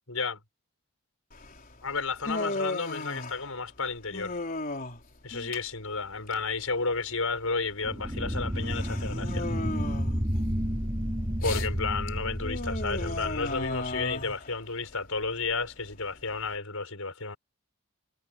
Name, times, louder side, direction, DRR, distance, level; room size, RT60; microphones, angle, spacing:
voice 1, 0.1-0.4 1.8-4.4 5.2-9.5 11.3-17.4, left 4 dB, 70° left, 6.1 m, -32 dB
Human voice, 1.3-16.5, left 2 dB, 40° left, 4.3 m, -37 dB
sound 1, 7.8-14.3, equal, 20° right, 3.3 m, -31 dB
head